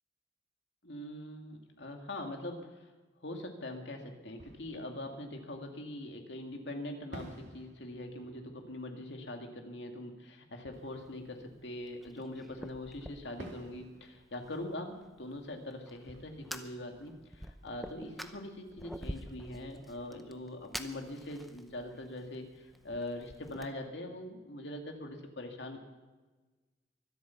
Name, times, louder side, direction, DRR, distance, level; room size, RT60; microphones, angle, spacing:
voice 1, 0.8-2.8 3.2-25.8, left 1 dB, 80° left, 3 dB, 2.2 m, -42 dB
Fireworks, 4.3-6.3 7.1-12.5 13.4-18.1, right 1 dB, 80° right, 2.4 m, -55 dB
Fire, 10.7-23.7, equal, ahead, 0.7 m, -49 dB
23.5 x 8.3 x 5.8 m, 1.2 s
head